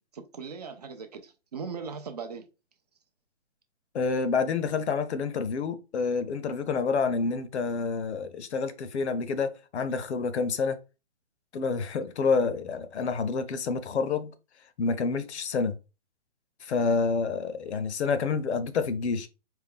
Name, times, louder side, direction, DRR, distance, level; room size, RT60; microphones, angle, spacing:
voice 1, 0.1-2.5, right 5 dB, 35° right, 0.5 m, -39 dB
voice 2, 3.9-10.8 11.5-14.3 14.8-15.8 16.6-19.3, left 4 dB, 75° left, 0.7 m, -28 dB
4.3 x 2.3 x 3.5 m
hypercardioid pair, 165°, 34 cm